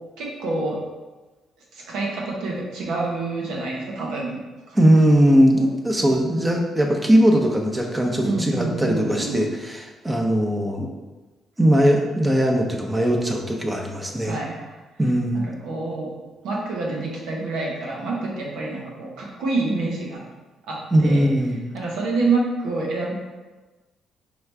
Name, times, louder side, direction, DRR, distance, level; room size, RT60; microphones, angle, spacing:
voice 1, 0.2-0.8 1.7-4.4 4.7-4.8 8.2-9.5 14.2-14.8 15.3-16.1 16.4-20.2 20.7-21.3 21.7-23.1, right 3 dB, 90° right, -3 dB, 1.1 m, -27 dB
voice 2, 4.7-11.0 11.6-14.4 15.0-15.4 20.9-21.6, equal, 15° right, 1 dB, 0.7 m, -19 dB
4.7 x 3.0 x 3.4 m, 1.2 s
cardioid pair, 90°, 0 cm